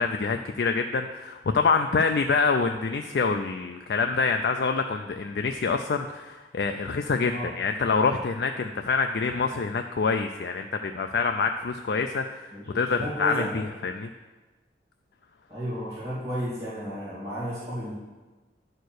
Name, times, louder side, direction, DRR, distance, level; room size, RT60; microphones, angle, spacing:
voice 1, 0.0-12.5 12.7-14.1, left 4 dB, 60° left, 6 dB, 0.4 m, -26 dB
voice 2, 12.5-13.5 15.5-18.0, equal, 15° right, -13 dB, 2.7 m, -33 dB
10.5 x 4.4 x 6.4 m, 1.2 s
head